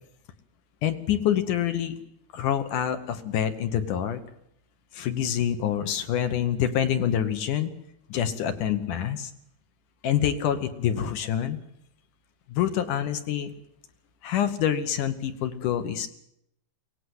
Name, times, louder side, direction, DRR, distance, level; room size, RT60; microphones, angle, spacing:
voice 1, 0.8-2.0 2.3-4.2 4.9-7.7 8.1-9.3 10.0-11.6 12.5-13.5 14.2-16.1, left 10 dB, 65° left, 9 dB, 2.3 m, -26 dB
22.5 x 18.0 x 8.0 m, 0.77 s
omnidirectional pair, 4.6 m